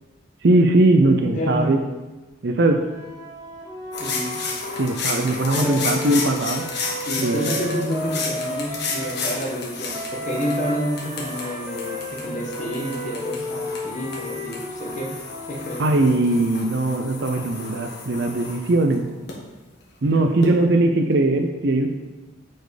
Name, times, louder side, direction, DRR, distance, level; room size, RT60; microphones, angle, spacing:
voice 1, 0.4-1.8 2.4-2.8 4.7-6.6 7.2-7.5 15.8-19.0 20.0-21.9, right 2 dB, 60° right, 6 dB, 0.6 m, -19 dB
voice 2, 1.3-1.8 4.0-4.4 5.5-5.8 7.0-15.1 15.5-16.3, equal, 40° left, -2 dB, 1.6 m, -29 dB
Wind instrument woodwind instrument, 2.8-9.2 9.9-15.9, equal, 20° right, 1.4 m, -34 dB
sound 1, 3.9-19.3 20.4-20.5, left 4 dB, 55° left, 1.5 m, -32 dB
8.0 x 4.4 x 5.0 m, 1.2 s
head